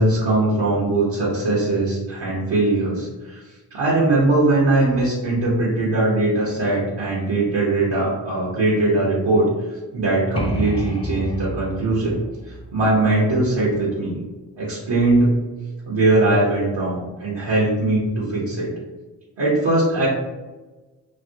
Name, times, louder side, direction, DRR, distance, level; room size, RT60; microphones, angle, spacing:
voice 1, 0.0-12.2 12.4-14.2 14.6-15.4 15.8-18.7 19.4-20.1, right 2 dB, 75° right, -7 dB, 1.0 m, -20 dB
sound 1, 10.4-14.0, left 1 dB, 15° left, 0.4 m, -30 dB
3.2 x 2.6 x 2.7 m, 1.2 s
cardioid pair, 50°, 43 cm